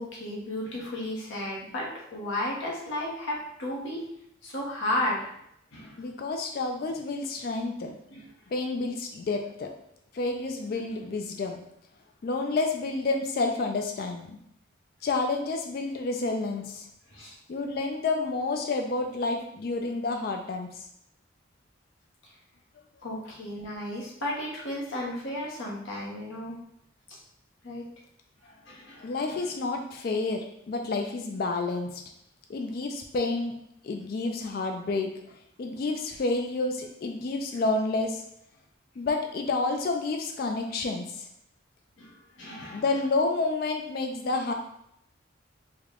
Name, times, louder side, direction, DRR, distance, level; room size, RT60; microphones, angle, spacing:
voice 1, 0.0-4.0 4.4-5.3 5.7-6.0 8.1-8.3 17.1-17.4 23.0-26.6 27.6-27.8 28.4-29.5 37.5-37.6 42.0-42.8, left 1 dB, 80° left, -3 dB, 0.9 m, -34 dB
voice 2, 6.0-7.9 8.5-9.7 10.1-11.6 12.2-14.4 15.0-16.9 17.5-20.9 29.0-32.0 32.5-33.5 33.8-38.2 39.0-41.3 42.7-44.5, left 3 dB, 50° left, 3 dB, 0.3 m, -29 dB
3.4 x 2.1 x 3.6 m, 0.74 s
head